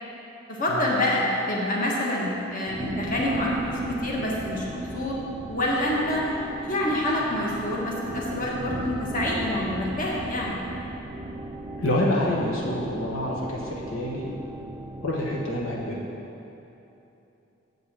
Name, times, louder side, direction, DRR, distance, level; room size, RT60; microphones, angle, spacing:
voice 1, 0.5-5.2 5.5-6.2 6.6-10.6, left 1 dB, 40° left, -4 dB, 1.4 m, -27 dB
sound 1, 2.7-16.0, right 1 dB, 20° right, 0.4 m, -36 dB
voice 2, 11.8-14.3 15.0-16.0, left 1 dB, 80° left, -3 dB, 1.2 m, -27 dB
7.6 x 5.4 x 7.4 m, 2.9 s
head